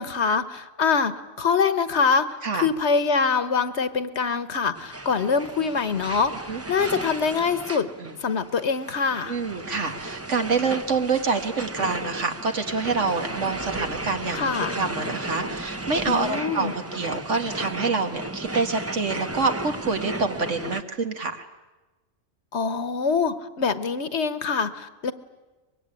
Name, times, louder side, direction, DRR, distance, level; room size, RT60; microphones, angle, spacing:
voice 1, 0.0-7.9 8.2-9.4 14.3-14.8 16.1-16.7 22.5-25.1, left 5 dB, 65° left, 12 dB, 1.4 m, -24 dB
sound 1, 4.7-20.8, right 2 dB, 15° right, 0.7 m, -35 dB
voice 2, 9.3-21.5, right 4 dB, 75° right, 6 dB, 2.1 m, -27 dB
24.0 x 21.5 x 10.0 m, 1.2 s
omnidirectional pair, 1.3 m